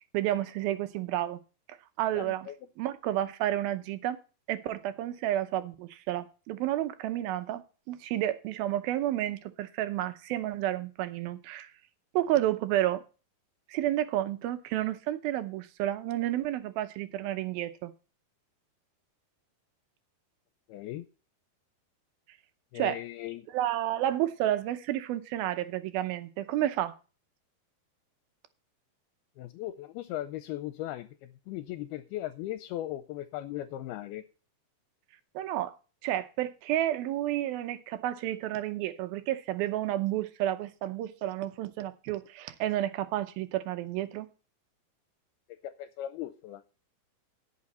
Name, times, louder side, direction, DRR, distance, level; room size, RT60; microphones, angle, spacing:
voice 1, 0.1-1.4 2.0-2.5 2.8-4.2 4.5-11.7 12.1-13.0 13.7-17.9 22.8-23.0 23.5-26.9 35.4-35.7 36.0-44.3, right 13 dB, 80° right, 10 dB, 2.6 m, -31 dB
voice 2, 2.1-2.6 20.7-21.0 22.7-23.5 29.4-34.3 45.5-46.6, left 13 dB, 80° left, 10 dB, 2.6 m, -38 dB
17.5 x 5.8 x 4.2 m, 0.33 s
omnidirectional pair, 4.5 m